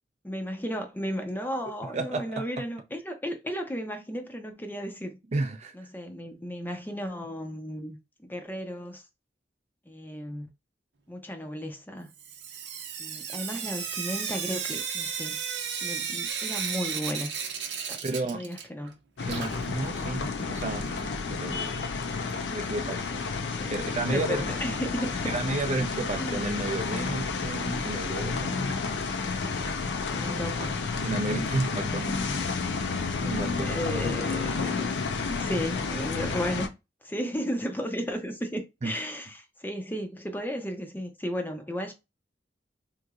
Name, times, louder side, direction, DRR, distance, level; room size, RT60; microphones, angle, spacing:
voice 1, 0.2-5.2 5.7-9.0 9.9-10.5 11.1-12.1 13.0-15.4 15.8-17.3 17.9-18.0 18.3-18.9 23.5-23.7 24.1-25.3 26.1-26.5 30.1-30.8 31.3-31.5 33.6-34.9 35.2-36.7 37.0-41.9, equal, 10° left, 0.6 m, -34 dB
voice 2, 1.8-2.4 5.3-5.7 18.0-18.4 19.2-20.9 21.3-21.7 22.5-23.2 23.7-24.4 25.3-28.7 31.0-32.5 33.2-33.8 38.8-38.9, right 2 dB, 40° right, 0.5 m, -32 dB
Sink (filling or washing) / Drip, 12.2-18.9 19.2-21.1 22.3-22.4 22.7-22.8 23.0-23.1 26.0-26.1 26.7-26.8 27.3-27.4 28.0-28.1 28.7-28.8 29.7-29.8, right 7 dB, 80° right, 0.7 m, -35 dB
sound 1, 19.2-36.7, left 4 dB, 75° left, 0.5 m, -31 dB
3.7 x 3.0 x 2.4 m
head